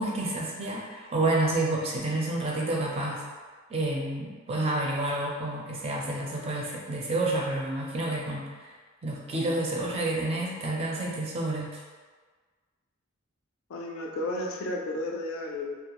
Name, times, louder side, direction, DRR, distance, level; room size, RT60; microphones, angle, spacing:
voice 1, 0.0-3.2 3.7-8.7 9.0-11.8, right 2 dB, 30° right, -3 dB, 0.4 m, -29 dB
voice 2, 13.7-15.8, left 1 dB, 70° left, 1 dB, 0.4 m, -33 dB
2.3 x 2.1 x 2.8 m, 1.5 s
head